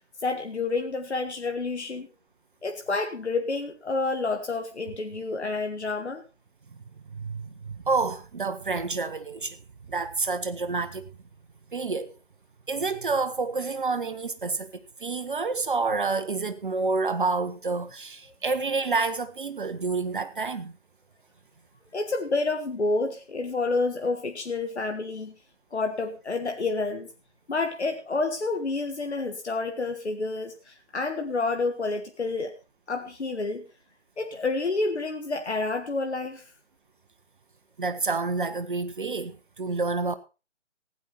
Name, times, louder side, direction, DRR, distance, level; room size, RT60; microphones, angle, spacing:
voice 1, 0.2-2.1 2.6-6.2 21.9-25.3 25.7-27.1 27.5-32.5 32.9-33.7 34.2-36.4, left 3 dB, 65° left, 1.7 m, -29 dB
voice 2, 7.1-9.6 9.9-11.0 11.7-12.1 12.7-20.7 37.8-40.2, right 4 dB, 45° right, 1.0 m, -28 dB
16.0 x 10.0 x 4.3 m
figure-of-eight pair, 150°, 36 cm